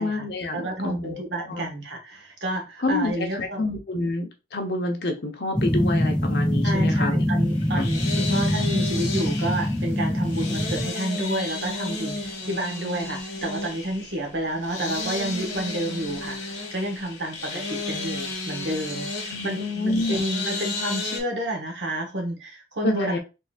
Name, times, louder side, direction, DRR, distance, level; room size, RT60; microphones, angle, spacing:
voice 1, 0.0-1.7 2.8-7.2 7.7-7.9 19.3-20.2 22.8-23.2, left 2 dB, 60° left, 0.8 m, -28 dB
voice 2, 0.5-3.6 6.6-23.2, right 1 dB, 80° right, 1.2 m, -30 dB
sound 1, 5.6-10.9, equal, 5° left, 0.4 m, -24 dB
sound 2, 7.5-21.2, left 2 dB, 85° left, 1.3 m, -33 dB
3.9 x 3.7 x 2.4 m
head